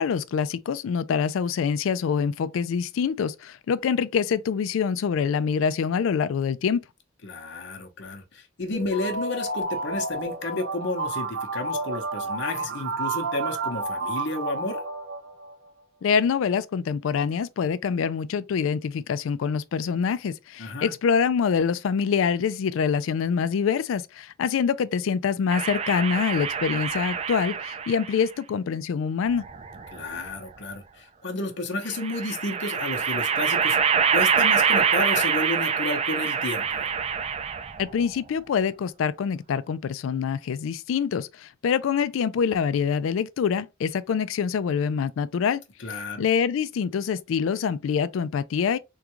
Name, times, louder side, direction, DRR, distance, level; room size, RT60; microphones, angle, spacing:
voice 1, 0.0-6.8 16.0-29.4 37.8-45.6 45.9-48.8, left 6 dB, 80° left, 0.3 m, -25 dB
voice 2, 7.2-14.8 20.6-20.9 29.9-33.8 34.1-36.8 45.8-46.2, left 2 dB, 60° left, 0.8 m, -31 dB
sound 1, 8.7-15.5, right 2 dB, 90° right, 0.7 m, -31 dB
sound 2, 25.5-28.2 29.3-30.3 31.9-37.9, right 6 dB, 30° right, 0.4 m, -25 dB
3.6 x 2.3 x 2.9 m
head